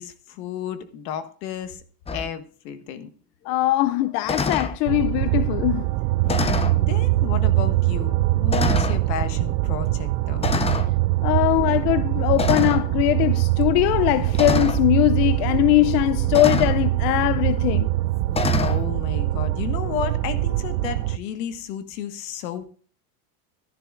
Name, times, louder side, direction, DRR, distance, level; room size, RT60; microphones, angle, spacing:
voice 1, 0.0-1.8 2.1-3.1 6.2-10.5 18.6-22.6, left 9 dB, 90° left, 1.6 m, -32 dB
sound 1, 2.1-2.3 4.3-4.8 6.3-6.8 7.7-7.8 8.5-9.0 10.4-10.9 12.4-12.9 14.3-14.8 16.3-16.8 18.3-18.8, left 5 dB, 15° left, 0.5 m, -25 dB
voice 2, 3.5-5.9 11.2-17.9, left 16 dB, 70° left, 0.6 m, -21 dB
sound 2, 4.9-21.2, right 17 dB, 75° right, 0.6 m, -23 dB
14.0 x 11.5 x 2.5 m
supercardioid pair, 135°, 49 cm